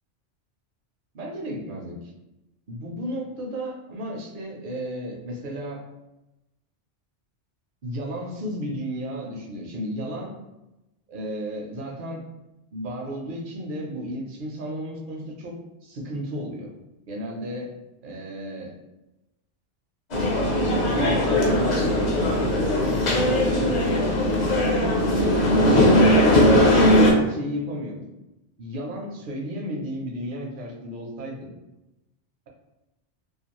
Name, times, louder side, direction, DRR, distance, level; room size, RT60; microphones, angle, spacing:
voice 1, 1.1-2.0 2.7-5.8 7.8-10.3 11.1-12.2 12.7-15.5 15.8-16.7 17.1-17.7 18.0-18.7 20.9-23.8 24.1-24.5 24.8-26.1 26.8-28.0 28.6-31.5, equal, 55° right, 0 dB, 0.7 m, -33 dB
sound 1, 20.1-27.1, left 1 dB, 50° left, 0.6 m, -19 dB
2.4 x 2.3 x 2.9 m, 0.96 s
omnidirectional pair, 1.2 m